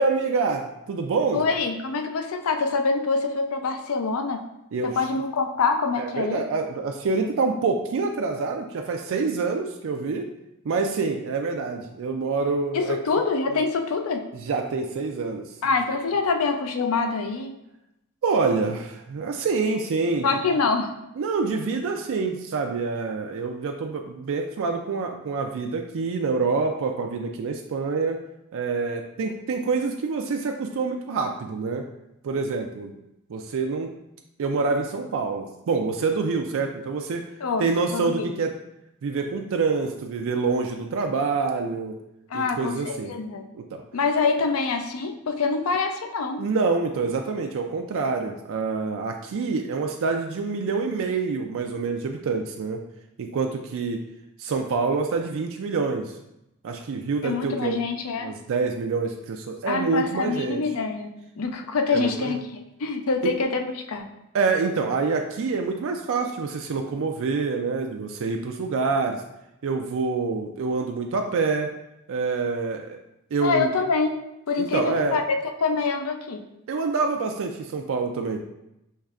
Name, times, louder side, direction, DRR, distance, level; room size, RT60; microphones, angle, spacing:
voice 1, 0.0-1.4 4.7-5.0 6.0-10.3 10.6-13.0 14.5-15.6 18.2-20.3 21.2-28.2 28.5-31.9 32.2-32.9 33.3-33.9 34.4-37.3 37.6-38.5 39.0-42.0 42.3-43.1 43.5-43.8 46.4-52.8 53.2-54.1 54.4-56.2 56.6-57.8 58.2-60.6 61.9-62.4 63.2-63.3 64.3-69.2 69.6-71.7 72.1-73.0 73.3-73.7 74.6-75.2 76.7-78.4, right 4 dB, 65° right, 3 dB, 0.4 m, -26 dB
voice 2, 1.3-4.4 5.0-6.4 12.7-14.2 15.6-17.5 20.2-20.9 37.4-38.4 42.3-43.4 43.9-46.5 57.2-58.3 59.7-61.1 61.4-64.1 73.4-74.2 74.5-76.4, left 4 dB, 70° left, 5 dB, 0.5 m, -25 dB
6.4 x 3.2 x 2.4 m, 0.86 s
head